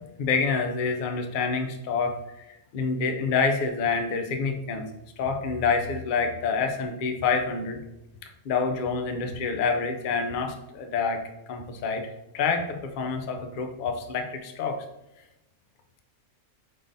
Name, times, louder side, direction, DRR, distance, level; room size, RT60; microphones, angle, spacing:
voice 1, 0.2-2.2 2.5-4.9 5.2-7.8 8.4-14.8, left 5 dB, 65° left, 5 dB, 0.5 m, -27 dB
5.0 x 3.8 x 2.6 m, 0.91 s
omnidirectional pair, 1.5 m